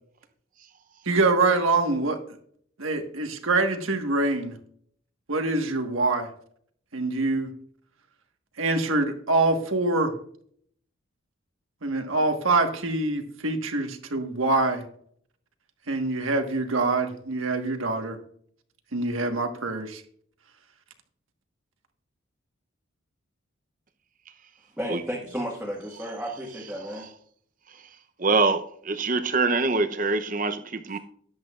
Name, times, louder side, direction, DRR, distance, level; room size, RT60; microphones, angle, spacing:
voice 1, 1.1-2.2 2.8-4.5 5.3-6.3 6.9-7.5 8.6-10.1 11.8-14.8 15.9-18.2 18.9-20.0, right 3 dB, 80° right, 1.5 m, -25 dB
voice 2, 24.8-27.1, equal, 5° right, 1.6 m, -33 dB
voice 3, 28.2-31.0, right 3 dB, 40° right, 0.7 m, -24 dB
13.5 x 10.5 x 2.5 m
head